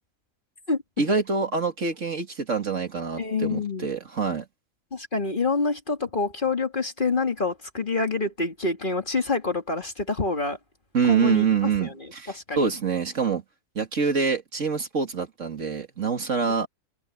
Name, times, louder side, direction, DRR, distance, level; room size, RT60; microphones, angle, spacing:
voice 1, 1.0-4.5 10.9-13.4 13.8-16.7, right 5 dB, 55° right, 2.6 m, -25 dB
voice 2, 3.2-3.9 4.9-10.6 11.0-11.5 11.8-12.7, left 3 dB, 35° left, 2.3 m, -27 dB
open air
omnidirectional pair, 1.5 m